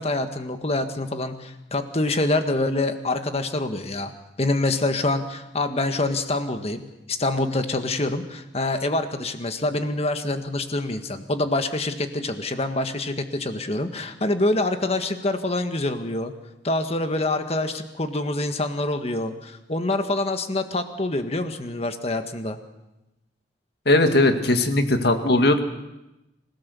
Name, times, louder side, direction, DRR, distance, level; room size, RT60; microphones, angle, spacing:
voice 1, 0.0-4.1 4.4-6.8 7.1-16.3 16.6-22.6, left 2 dB, 35° left, 7 dB, 1.6 m, -26 dB
voice 2, 23.9-25.6, left 2 dB, 65° left, 6 dB, 2.0 m, -19 dB
27.0 x 17.5 x 7.0 m, 0.96 s
head